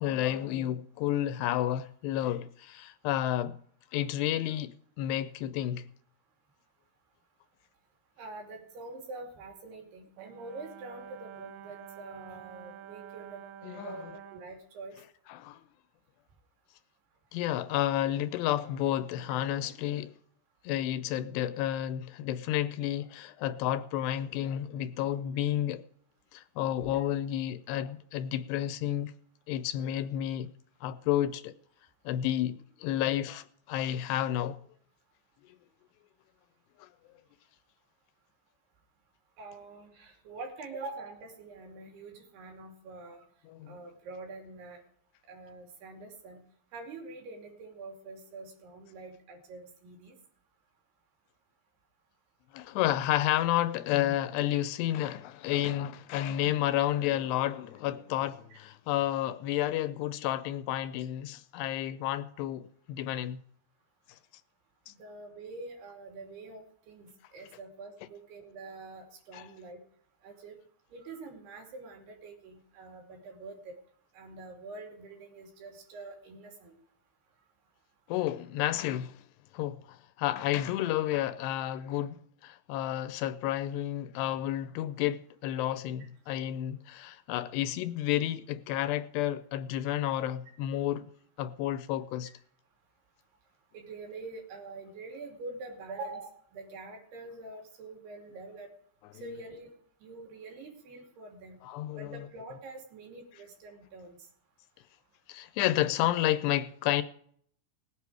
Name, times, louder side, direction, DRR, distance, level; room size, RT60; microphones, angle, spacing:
voice 1, 0.0-3.6 3.9-5.9 13.6-14.0 15.3-15.6 17.3-20.1 20.6-25.8 26.3-29.1 29.5-30.5 30.8-31.5 32.1-34.6 36.8-36.9 43.5-43.8 52.5-63.4 64.9-65.0 69.3-69.5 78.1-79.2 79.5-91.1 91.4-92.3 101.6-102.2 105.3-107.0, left 12 dB, 80° left, 2.6 m, -31 dB
voice 2, 8.2-13.4 13.8-14.9 18.0-18.1 27.0-27.1 39.4-43.2 43.7-44.8 45.3-46.4 46.7-50.2 58.5-58.6 65.0-69.8 70.2-70.6 70.9-73.8 74.1-76.7 86.0-86.1 93.7-98.7 99.1-99.7 100.0-101.6 101.9-104.2, right 3 dB, 70° right, 4.6 m, -45 dB
Brass instrument, 10.2-14.5, right 10 dB, 85° right, 2.0 m, -48 dB
19.5 x 8.4 x 4.7 m
omnidirectional pair, 5.0 m